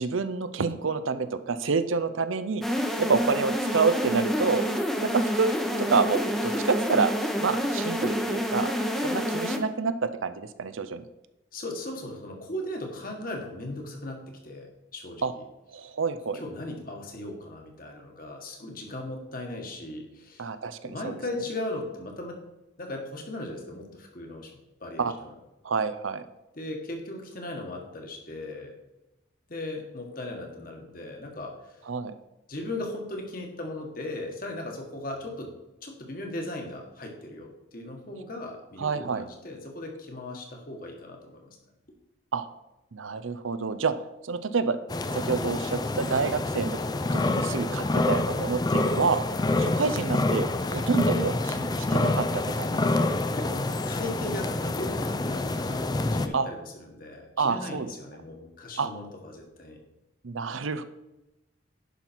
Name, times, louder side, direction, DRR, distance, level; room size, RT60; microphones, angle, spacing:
voice 1, 0.0-2.6 3.0-4.7 5.1-7.1 7.4-8.7 9.0-11.0 15.2-15.3 15.7-16.4 20.4-21.2 25.0-25.1 25.6-26.3 31.9-32.1 38.8-39.2 42.3-42.5 42.9-44.0 44.2-44.8 45.1-46.8 47.1-49.2 49.6-53.2 56.3-56.5 57.4-57.9 58.8-58.9 60.2-60.8, right 4 dB, 90° right, 12 dB, 0.7 m, -28 dB
sound 1, 2.6-9.6, equal, ahead, 0.8 m, -28 dB
voice 2, 11.5-15.2 16.3-20.5 20.8-22.4 22.8-24.5 24.8-25.1 26.5-28.7 29.5-31.9 32.5-35.5 35.8-41.6 53.3-59.8, left 1 dB, 45° left, 2 dB, 1.7 m, -37 dB
sound 2, 44.9-56.3, left 2 dB, 20° left, 0.4 m, -27 dB
11.0 x 5.7 x 4.6 m, 0.96 s
head